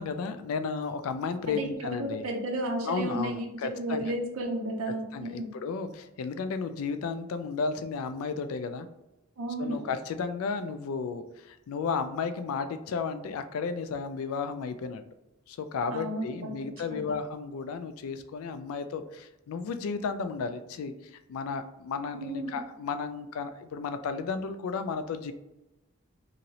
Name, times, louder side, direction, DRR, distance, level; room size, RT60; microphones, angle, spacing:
voice 1, 0.0-2.2 2.9-4.1 5.1-8.9 9.6-15.0 15.5-25.3, left 5 dB, 80° left, 9 dB, 0.3 m, -33 dB
voice 2, 1.6-5.5 9.4-9.9 15.9-16.5 16.9-17.2 22.1-22.6, right 1 dB, 80° right, 1 dB, 0.6 m, -33 dB
2.9 x 2.7 x 2.7 m, 0.93 s
head